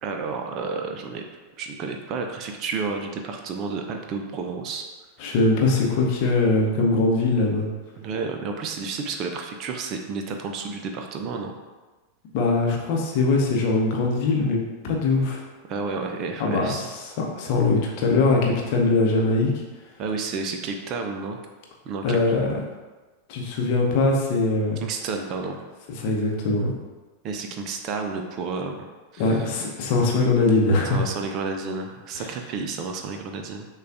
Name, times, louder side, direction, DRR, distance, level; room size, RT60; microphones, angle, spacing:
voice 1, 0.0-1.2 1.6-4.9 8.0-11.5 15.7-16.9 20.0-21.4 21.8-22.2 24.8-25.6 27.2-28.9 29.1-29.6 30.9-33.7, right 4 dB, 35° right, 4 dB, 0.4 m, -31 dB
voice 2, 5.2-7.7 12.3-14.6 14.8-15.4 16.4-19.5 22.0-22.6 23.3-24.8 26.0-26.7 29.2-31.0 32.2-32.3, left 3 dB, 45° left, -1 dB, 0.8 m, -22 dB
6.3 x 2.3 x 2.5 m, 1.2 s
figure-of-eight pair, 90°, 0 cm